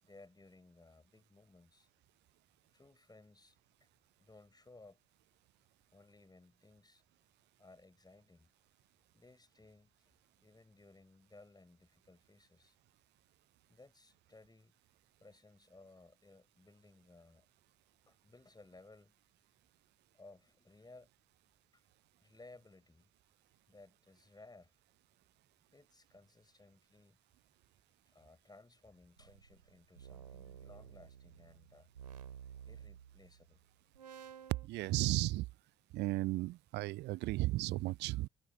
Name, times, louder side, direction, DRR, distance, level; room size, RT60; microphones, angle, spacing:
voice 1, 0.0-1.9 2.7-3.9 4.2-5.0 5.9-7.0 7.6-8.5 9.1-10.1 10.4-12.8 13.7-14.7 15.2-17.5 18.1-19.2 20.1-21.1 21.7-21.8 22.2-23.1 23.7-24.7 25.7-27.2 28.1-31.9 32.7-33.6, left 2 dB, 20° left, 7.5 m, -60 dB
sound 1, 29.2-33.5 33.9-34.7, right 8 dB, 80° right, 3.0 m, -53 dB
voice 2, 34.7-35.5 35.9-38.3, right 19 dB, 55° right, 0.6 m, -34 dB
figure-of-eight pair, 40°, 21 cm